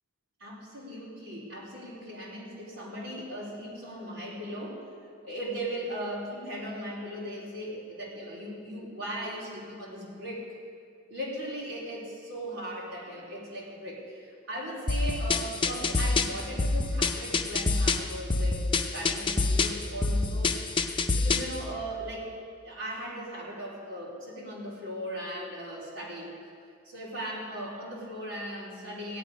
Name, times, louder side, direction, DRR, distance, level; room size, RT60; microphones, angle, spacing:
voice 1, 0.4-4.8 5.2-10.6 11.1-22.3 22.6-26.3 26.8-29.2, equal, 90° right, -6 dB, 3.2 m, -38 dB
sound 1, 14.9-21.6, left 3 dB, 25° left, 0.7 m, -27 dB
16.5 x 10.0 x 5.2 m, 2.2 s
head